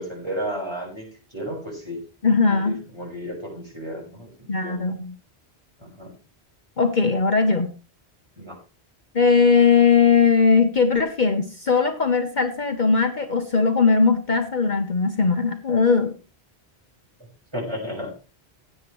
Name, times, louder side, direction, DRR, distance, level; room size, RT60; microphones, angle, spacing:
voice 1, 0.0-2.0 2.5-4.9 5.8-6.1 8.4-8.5 17.5-18.1, equal, 25° right, 0 dB, 5.5 m, -33 dB
voice 2, 2.2-2.8 4.5-5.1 6.8-7.7 9.1-16.1, left 5 dB, 45° left, 6 dB, 1.2 m, -19 dB
16.0 x 8.9 x 3.2 m, 0.32 s
omnidirectional pair, 1.1 m